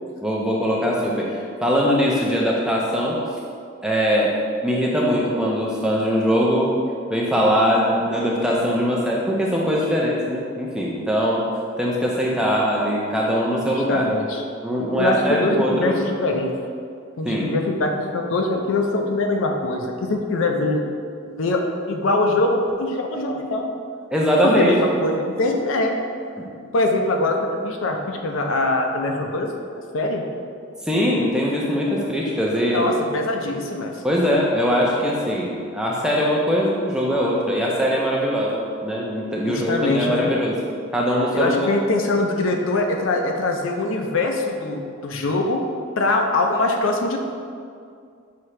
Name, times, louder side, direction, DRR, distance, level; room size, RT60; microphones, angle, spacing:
voice 1, 0.2-3.2 3.8-6.7 7.1-11.5 11.8-14.1 14.6-16.1 17.2-17.5 24.1-24.8 26.4-26.5 30.8-32.9 34.0-40.6 40.9-41.5, equal, 5° right, -4 dB, 0.4 m, -21 dB
voice 2, 13.6-14.4 15.0-16.5 17.2-20.8 21.3-21.6 21.9-23.7 24.4-26.0 26.7-29.5 29.9-30.2 32.7-33.9 39.5-40.3 41.3-45.6 46.0-47.2, left 2 dB, 65° left, 2 dB, 0.4 m, -23 dB
5.9 x 2.8 x 3.2 m, 2.3 s
head